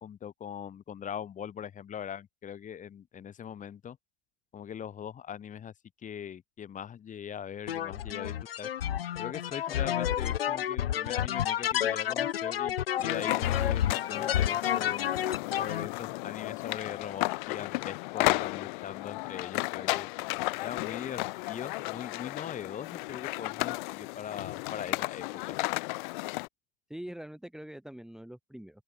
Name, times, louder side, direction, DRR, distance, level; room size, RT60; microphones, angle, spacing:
voice 1, 0.0-4.0 4.5-5.7 6.0-8.7 9.2-15.1 15.6-20.1 20.6-25.6, left 8 dB, 25° left, 2.7 m, -41 dB
sound 1, 7.7-15.9, left 10 dB, 85° left, 0.6 m, -30 dB
sound 2, 13.0-26.5, left 24 dB, 55° left, 1.0 m, -34 dB
voice 2, 26.9-28.8, right 1 dB, ahead, 1.8 m, -43 dB
open air
hypercardioid pair, 95°, 29 cm